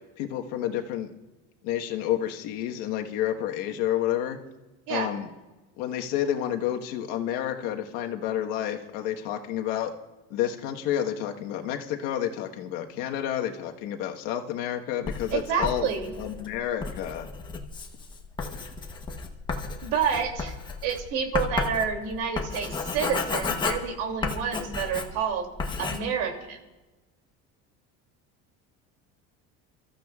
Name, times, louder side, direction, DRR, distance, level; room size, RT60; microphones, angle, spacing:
voice 1, 0.2-1.1 1.6-4.4 4.9-5.3 5.8-9.9 10.3-15.9 16.2-17.3, left 11 dB, 80° left, 3 dB, 1.4 m, -30 dB
Writing, 15.1-25.3 25.6-26.0, left 4 dB, 15° left, 1.0 m, -33 dB
voice 2, 15.3-16.1 19.8-20.5 20.8-25.5 25.8-26.6, right 7 dB, 75° right, 3 dB, 2.8 m, -29 dB
29.0 x 14.5 x 2.4 m, 1.1 s
cardioid pair, 180°, 29 cm